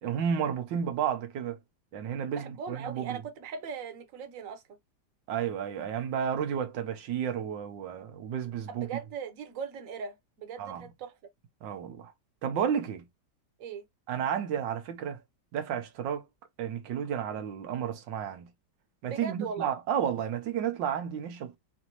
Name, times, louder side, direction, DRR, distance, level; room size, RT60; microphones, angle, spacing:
voice 1, 0.0-1.6 1.9-3.2 5.3-8.9 10.6-10.9 11.6-12.1 12.4-13.0 14.1-15.2 15.5-16.2 16.6-18.5 19.0-21.6, right 8 dB, 85° right, 1.6 m, -32 dB
voice 2, 2.3-4.8 8.7-11.2 13.6-13.8 19.1-19.7, right 6 dB, 55° right, 1.2 m, -39 dB
5.1 x 2.7 x 2.9 m
omnidirectional pair, 1.9 m